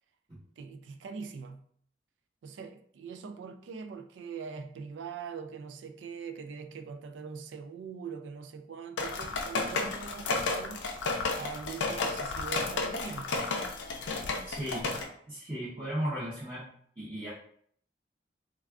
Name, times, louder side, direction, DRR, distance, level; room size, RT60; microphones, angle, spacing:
voice 1, 0.6-1.7 2.4-10.9 11.4-13.3 14.9-15.0, right 6 dB, 85° right, 0.3 m, -42 dB
sound 1, 9.0-15.0, left 3 dB, 85° left, 0.5 m, -32 dB
voice 2, 14.5-14.9 15.3-16.7 17.0-17.3, equal, 25° right, 0.6 m, -35 dB
3.4 x 2.3 x 2.3 m
head